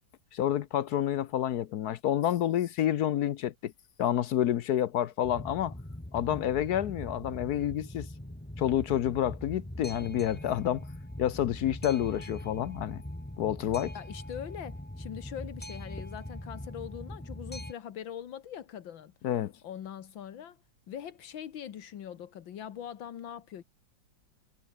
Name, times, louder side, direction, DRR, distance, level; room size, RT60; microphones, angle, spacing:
voice 1, 0.3-3.7 4.0-5.7 6.1-8.1 8.6-10.8 11.2-13.0 13.4-13.9 19.2-19.5, left 11 dB, 65° left, 1.1 m, -29 dB
Boat Water vehicle, 5.2-17.7, left 1 dB, 5° left, 1.4 m, -42 dB
voice 2, 13.9-19.1 19.6-20.6 20.9-23.6, left 9 dB, 80° left, 2.0 m, -42 dB
omnidirectional pair, 2.1 m